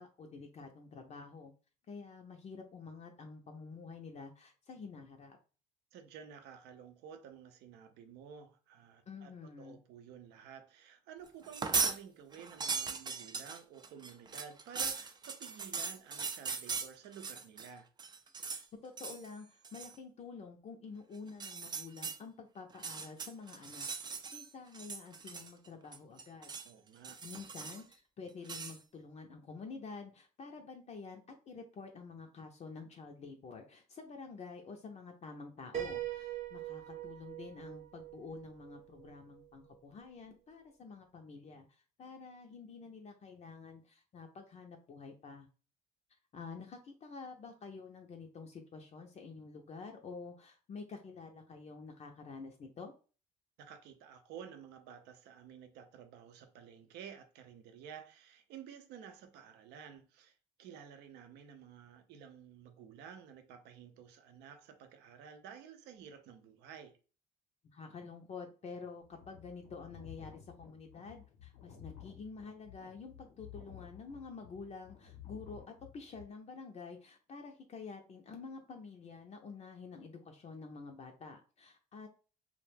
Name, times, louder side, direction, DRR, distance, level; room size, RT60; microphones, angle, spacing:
voice 1, 0.0-1.5 1.9-5.4 9.1-9.8 18.8-26.5 27.2-31.2 31.5-45.5 46.3-52.9 67.7-82.1, left 4 dB, 40° left, 0.5 m, -49 dB
voice 2, 5.9-17.9 26.6-27.2 53.6-67.0, right 8 dB, 75° right, 0.6 m, -52 dB
sound 1, 11.4-12.0 12.3-17.7 18.0-18.6 19.0-19.3 19.6-20.0 21.3-22.2 22.7-24.5 24.7-25.7 25.9-26.7 27.0-27.9 28.5-28.8, right 5 dB, 25° right, 0.4 m, -39 dB
Piano, 35.7-39.5, right 12 dB, 40° right, 0.7 m, -43 dB
sound 2, 69.0-76.2, left 10 dB, 80° left, 0.8 m, -54 dB
2.3 x 2.1 x 3.2 m
supercardioid pair, 75°, 17 cm